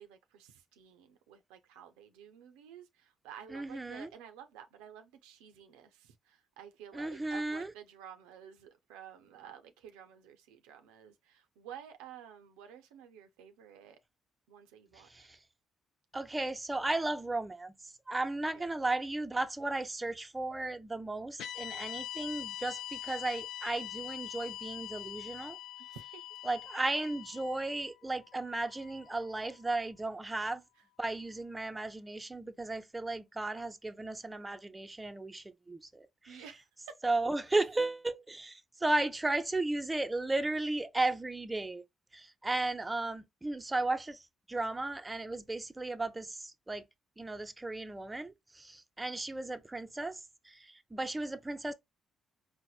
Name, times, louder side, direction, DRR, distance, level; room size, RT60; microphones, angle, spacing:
voice 1, 0.0-14.0 14.5-15.3 18.5-18.8 21.8-22.0 25.9-26.2 30.7-30.9 36.3-37.0 37.5-37.9, right 9 dB, 85° right, 0.4 m, -52 dB
voice 2, 3.5-4.1 6.9-7.7 15.1-15.4 16.1-17.7 18.1-25.6 26.4-30.6 31.0-36.4 37.0-41.8 42.1-44.2 44.5-46.8 47.2-50.2 50.5-51.7, right 2 dB, 20° right, 0.5 m, -35 dB
sound 1, 21.4-29.7, left 13 dB, 75° left, 0.4 m, -44 dB
4.1 x 2.0 x 2.2 m
hypercardioid pair, 50°, 0 cm